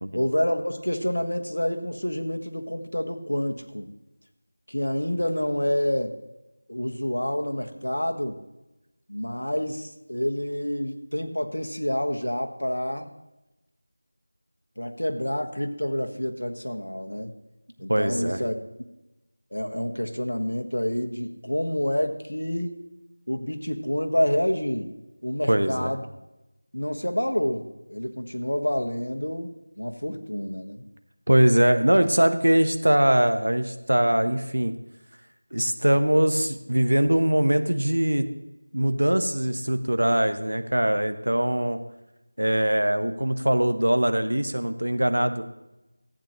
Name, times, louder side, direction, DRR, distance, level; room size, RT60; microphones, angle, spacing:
voice 1, 0.1-3.9 4.7-6.2 6.7-8.4 9.1-13.1 14.8-17.4 17.8-18.5 19.5-22.7 23.3-24.9 25.2-26.1 26.7-30.8, equal, 80° left, 5 dB, 1.5 m, -28 dB
voice 2, 17.9-18.4 25.5-25.9 31.3-34.7 35.5-38.3 38.7-41.8 42.4-45.4, right 1 dB, 75° right, 8 dB, 1.1 m, -22 dB
14.5 x 9.0 x 3.2 m, 0.97 s
figure-of-eight pair, 170°, 0 cm